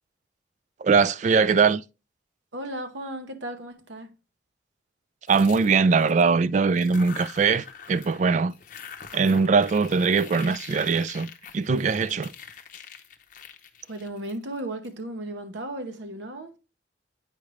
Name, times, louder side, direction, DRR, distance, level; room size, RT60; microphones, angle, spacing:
voice 1, 0.8-1.8 5.3-8.5 9.1-12.3, right 5 dB, 40° right, 0.3 m, -21 dB
voice 2, 2.5-4.2 13.9-16.6, right 1 dB, 80° right, 1.0 m, -35 dB
sound 1, 5.3-6.3 6.7-8.2 8.5-14.9, left 7 dB, 45° left, 0.7 m, -44 dB
8.5 x 4.9 x 3.1 m
head